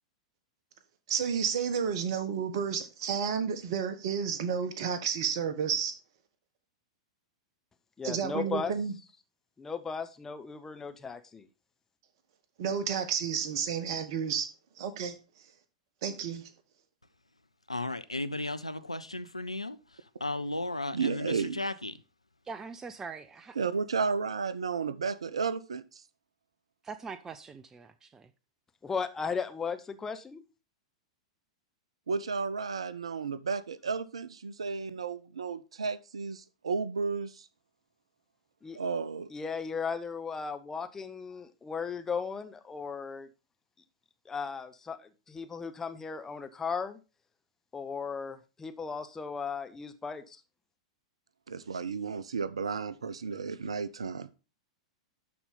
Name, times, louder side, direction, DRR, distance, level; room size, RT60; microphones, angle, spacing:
voice 1, 1.1-5.9 8.0-8.9 12.6-14.5 14.8-15.2 16.0-16.5, right 7 dB, 50° right, 1.3 m, -31 dB
voice 2, 8.0-8.7 9.6-11.5 28.8-30.4 38.6-38.8 39.3-43.3 44.3-47.0 47.7-50.4, left 5 dB, 15° left, 0.8 m, -36 dB
voice 3, 17.7-19.8 20.2-21.9, left 2 dB, 85° left, 0.5 m, -35 dB
voice 4, 20.9-21.6 23.6-26.0 32.1-37.5 38.8-39.3 51.5-54.3, right 5 dB, 70° right, 0.5 m, -33 dB
voice 5, 22.4-23.6 26.8-28.3, right 5 dB, 15° right, 0.5 m, -43 dB
12.0 x 4.3 x 3.7 m
figure-of-eight pair, 95°, 3 cm